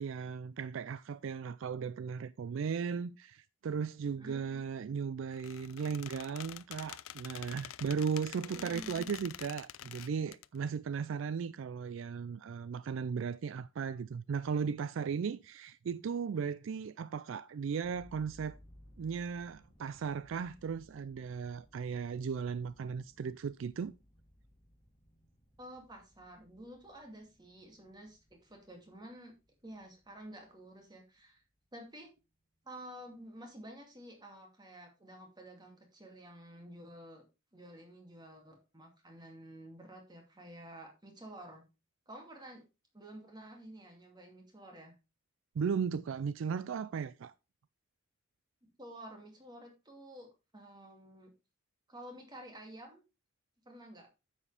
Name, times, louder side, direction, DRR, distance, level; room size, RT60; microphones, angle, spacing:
voice 1, 0.0-18.6 19.0-23.9 45.6-47.3, right 6 dB, 65° right, 0.3 m, -36 dB
voice 2, 4.1-4.5 8.4-9.1 25.6-29.3 29.6-31.4 31.7-32.1 32.6-37.2 37.5-41.7 42.1-42.6 42.9-44.9 48.8-50.3 50.5-51.3 51.9-53.0 53.6-54.1, right 1 dB, 20° right, 2.4 m, -51 dB
Squeak, 5.3-10.5, left 12 dB, 75° left, 0.4 m, -47 dB
sound 1, 17.8-31.4, equal, 25° left, 1.9 m, -62 dB
9.7 x 7.3 x 3.4 m
head